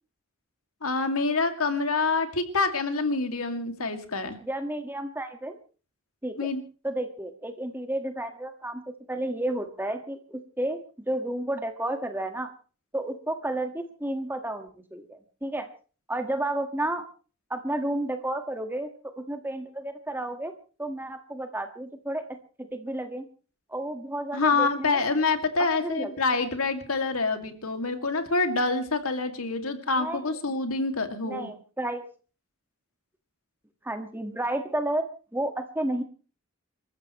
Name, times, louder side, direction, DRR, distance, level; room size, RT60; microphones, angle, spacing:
voice 1, 0.8-4.4 6.4-6.6 24.3-31.5, left 3 dB, 80° left, 7 dB, 2.4 m, -26 dB
voice 2, 4.4-5.6 6.2-6.5 6.8-10.8 11.1-12.5 12.9-15.7 16.1-17.0 17.5-18.9 19.2-22.2 22.7-23.2 23.7-25.0 25.8-26.1 29.9-30.2 31.2-32.0 33.8-35.0 35.3-36.0, right 1 dB, 10° right, 6 dB, 1.6 m, -31 dB
27.0 x 14.5 x 3.1 m, 0.37 s
head